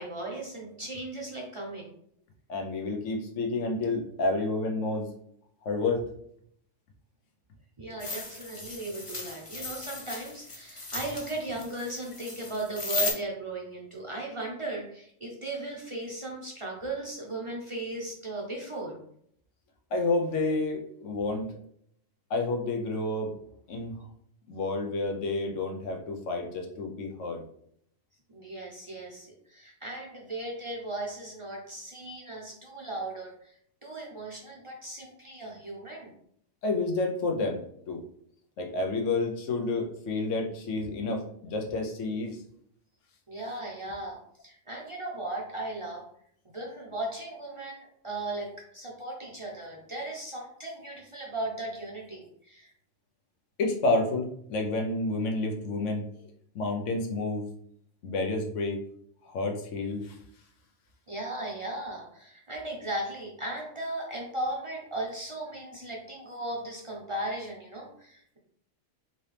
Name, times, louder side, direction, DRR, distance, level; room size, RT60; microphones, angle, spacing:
voice 1, 0.0-1.9 7.8-19.0 28.3-33.5 33.8-36.1 43.3-46.1 46.5-52.7 61.1-68.4, right 2 dB, 30° right, -2 dB, 0.6 m, -37 dB
voice 2, 2.5-5.1 5.6-6.0 19.9-21.5 22.3-23.4 23.7-23.9 24.5-27.4 36.6-38.0 38.6-42.4 53.6-56.3 56.5-57.5 58.0-58.8 59.3-60.2, left 2 dB, 90° left, 2 dB, 1.1 m, -30 dB
sound 1, 8.0-13.1, left 2 dB, 30° left, 0.7 m, -36 dB
4.0 x 2.8 x 3.3 m, 0.68 s
omnidirectional pair, 1.2 m